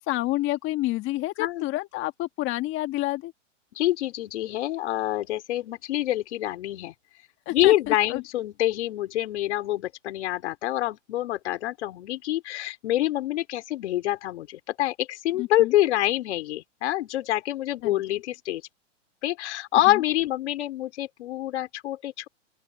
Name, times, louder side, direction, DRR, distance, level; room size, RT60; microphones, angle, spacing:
voice 1, 0.0-3.3 7.4-8.2 15.4-15.7 17.8-18.0 19.9-20.0, left 17 dB, 35° left, 1.6 m, -29 dB
voice 2, 3.7-6.9 7.5-18.6 19.2-22.3, left 14 dB, 65° left, 4.2 m, -26 dB
open air
hypercardioid pair, 125°, 37 cm